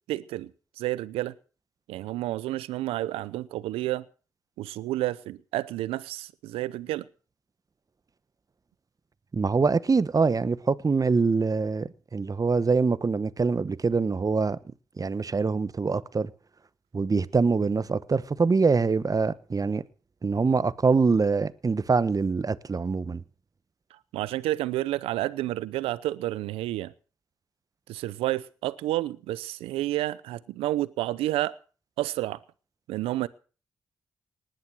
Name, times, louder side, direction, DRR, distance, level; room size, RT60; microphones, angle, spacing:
voice 1, 0.1-0.5 0.8-1.3 1.9-4.0 4.6-7.1 24.1-26.9 27.9-31.6 32.0-32.4 32.9-33.3, right 15 dB, 90° right, 0.7 m, -30 dB
voice 2, 9.3-14.6 15.0-16.3 16.9-19.8 20.2-23.2, right 4 dB, 40° right, 1.1 m, -24 dB
19.0 x 10.5 x 6.2 m
supercardioid pair, 45°, 10 cm